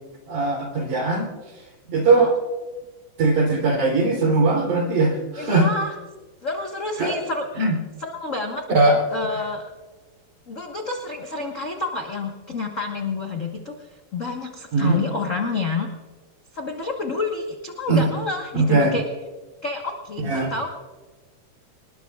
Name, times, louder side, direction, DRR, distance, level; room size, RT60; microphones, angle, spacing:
voice 1, 0.3-1.3 1.9-2.4 3.2-5.7 7.0-7.2 7.6-7.7 8.7-9.0 14.7-15.0 17.9-18.1 18.5-18.9 20.2-20.5, right 3 dB, 70° right, 1 dB, 4.8 m, -20 dB
voice 2, 5.4-5.9 6.4-7.6 8.0-8.6 9.1-9.6 10.5-15.9 16.5-19.1 19.6-20.7, left 3 dB, 80° left, 1 dB, 0.7 m, -29 dB
26.0 x 20.0 x 2.4 m, 1.3 s
omnidirectional pair, 3.7 m